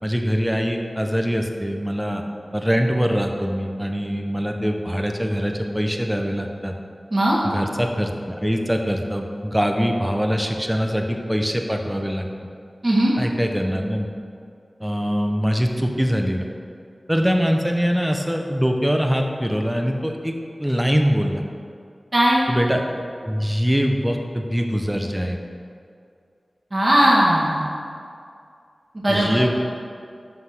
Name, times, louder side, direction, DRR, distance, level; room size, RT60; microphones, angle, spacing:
voice 1, 0.0-2.2 2.5-6.7 7.4-12.3 13.2-14.1 14.8-16.5 17.1-20.3 20.6-21.4 22.5-22.8 23.2-25.4 29.1-29.6, equal, 5° right, 3 dB, 0.8 m, -23 dB
voice 2, 22.1-22.4 26.7-27.6 28.9-29.4, right 1 dB, 40° right, -7 dB, 1.7 m, -18 dB
5.8 x 5.7 x 5.9 m, 2.3 s
cardioid pair, 45°, 0 cm